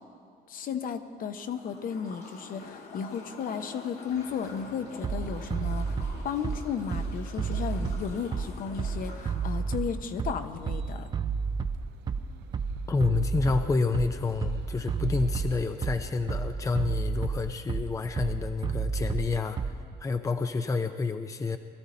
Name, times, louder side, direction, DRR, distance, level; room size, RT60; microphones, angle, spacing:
voice 1, 0.5-6.0 6.2-11.1, left 7 dB, 55° left, 8 dB, 0.9 m, -34 dB
sound 1, 1.3-10.0, left 3 dB, 70° left, 2.9 m, -47 dB
sound 2, 4.1-16.7, right 12 dB, 80° right, 0.6 m, -51 dB
Bass drum, 5.0-20.0, right 5 dB, 25° right, 0.5 m, -31 dB
voice 2, 12.9-19.6 20.0-21.6, left 4 dB, 20° left, 8 dB, 0.6 m, -29 dB
20.5 x 13.0 x 4.3 m, 2.3 s
cardioid pair, 110°, 17 cm